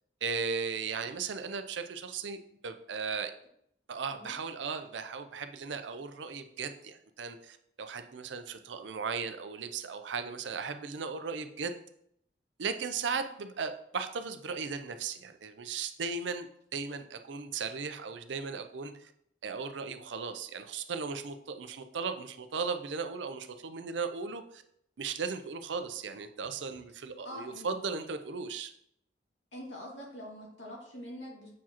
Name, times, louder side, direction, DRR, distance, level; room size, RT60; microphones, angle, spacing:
voice 1, 0.2-3.3 3.9-11.8 12.6-16.5 16.7-19.1 19.4-24.6 25.0-28.7, right 5 dB, 85° right, 8 dB, 0.6 m, -36 dB
voice 2, 27.2-27.7 29.5-31.5, equal, 85° left, -4 dB, 2.3 m, -44 dB
7.2 x 4.7 x 2.9 m, 0.72 s
head